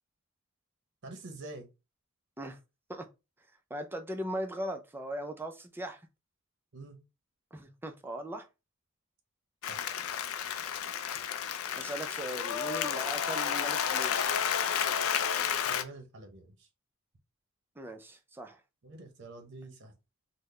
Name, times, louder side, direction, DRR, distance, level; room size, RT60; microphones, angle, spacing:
voice 1, 1.0-1.7 6.7-7.0 9.6-9.9 15.6-16.7 18.8-19.9, right 2 dB, 55° right, 0.7 m, -46 dB
voice 2, 3.7-6.1 7.5-8.5 11.8-14.4 17.8-18.6, right 1 dB, 10° right, 0.4 m, -39 dB
Applause, 9.6-15.8, left 8 dB, 85° left, 0.4 m, -31 dB
3.7 x 2.1 x 3.2 m
head